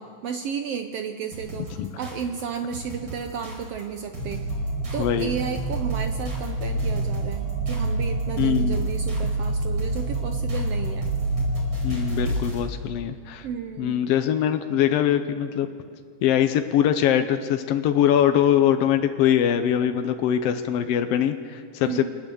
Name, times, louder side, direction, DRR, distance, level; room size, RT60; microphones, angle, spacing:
voice 1, 0.0-4.5 4.9-11.1 13.4-14.0 21.8-22.1, right 7 dB, 75° right, 7 dB, 1.4 m, -33 dB
sound 1, 1.3-12.7, right 2 dB, 35° right, 5.4 m, -38 dB
sound 2, 4.2-12.3, right 2 dB, 55° right, 6.2 m, -27 dB
voice 2, 5.0-5.3 8.4-8.8 11.8-13.5 13.8-15.7 16.2-22.1, left 10 dB, 75° left, 8 dB, 1.4 m, -22 dB
25.5 x 19.5 x 7.1 m, 2.2 s
omnidirectional pair, 3.7 m